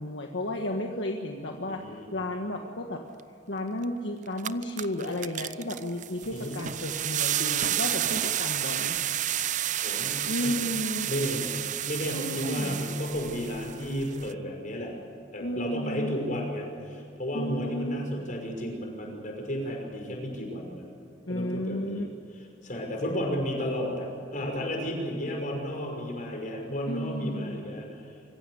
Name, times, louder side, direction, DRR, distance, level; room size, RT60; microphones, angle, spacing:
voice 1, 0.0-3.0 3.5-9.0 10.2-11.1 12.1-12.8 15.4-16.2 17.3-18.0 21.3-22.1 26.9-27.6, left 1 dB, 70° left, 2 dB, 1.5 m, -33 dB
voice 2, 1.7-2.2 6.3-6.5 9.8-10.7 11.1-11.5 11.9-14.9 15.3-20.8 21.3-22.1 22.6-27.9, equal, 45° left, 1 dB, 5.8 m, -33 dB
sound 1, 3.8-3.9 4.3-14.3, right 11 dB, 40° right, 0.5 m, -31 dB
25.5 x 15.5 x 9.8 m, 2.6 s
head